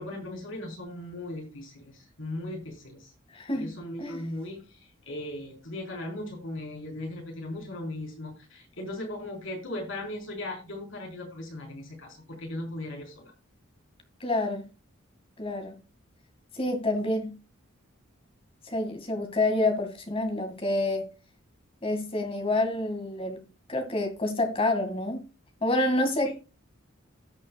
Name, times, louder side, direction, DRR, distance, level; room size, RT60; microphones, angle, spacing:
voice 1, 0.0-3.1 3.5-13.3 26.2-26.3, left 1 dB, 65° left, 4.4 m, -38 dB
voice 2, 3.3-3.7 4.0-4.3 14.2-14.6 15.4-15.7 16.5-17.4 18.6-21.1 21.8-23.4 23.7-25.3 25.6-26.3, left 2 dB, 25° left, 2.1 m, -28 dB
17.0 x 6.6 x 2.3 m
head